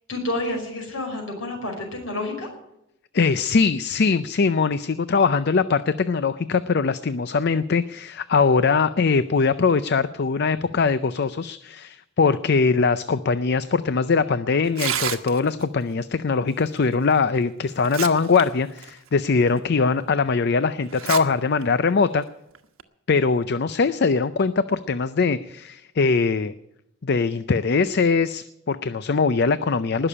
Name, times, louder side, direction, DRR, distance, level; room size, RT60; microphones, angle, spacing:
voice 1, 0.1-2.5, left 1 dB, 65° left, 1 dB, 5.6 m, -29 dB
voice 2, 3.1-22.3 23.1-26.5 27.0-30.1, left 4 dB, 50° left, 13 dB, 0.5 m, -21 dB
Tearing, 14.6-15.6 17.1-17.2 17.7-18.4 18.8-18.9 19.6-19.7 20.9-21.2 21.6-21.7 22.5-22.8, right 10 dB, 75° right, 1.2 m, -29 dB
20.0 x 6.9 x 10.0 m, 0.83 s
head